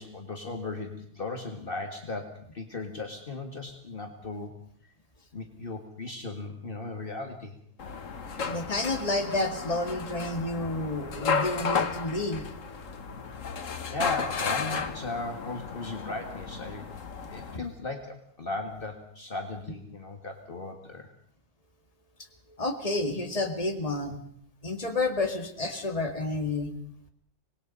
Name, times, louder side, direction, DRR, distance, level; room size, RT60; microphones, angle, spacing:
voice 1, 0.0-4.6 5.3-7.6 13.9-16.9 17.3-21.1, left 2 dB, 45° left, 4 dB, 2.1 m, -37 dB
sound 1, 7.8-17.6, left 5 dB, 90° left, 1.7 m, -33 dB
voice 2, 8.5-12.5 17.5-17.6 22.6-24.2 24.6-26.7, left 2 dB, 30° left, 5 dB, 2.3 m, -30 dB
25.0 x 20.5 x 5.4 m, 0.66 s
omnidirectional pair, 1.3 m